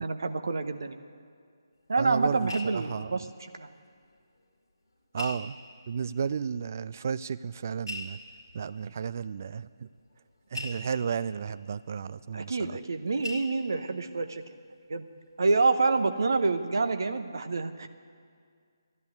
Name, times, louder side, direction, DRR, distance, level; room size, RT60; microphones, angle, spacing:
voice 1, 0.0-1.0 1.9-3.7 12.3-14.4 14.9-15.0 15.4-17.9, right 3 dB, 55° right, 9 dB, 0.9 m, -27 dB
sound 1, 1.8-4.1 4.4-4.5 5.2-6.1 7.0-7.1 7.8-13.0 13.2-14.2 14.6-14.9 15.2-15.3, left 2 dB, 65° left, 2.0 m, -44 dB
voice 2, 2.0-3.3 5.1-5.6 5.9-8.2 8.5-9.9 10.5-12.8, right 6 dB, 40° right, 17 dB, 0.3 m, -33 dB
13.5 x 10.5 x 9.3 m, 2.1 s
figure-of-eight pair, 145°, 2 cm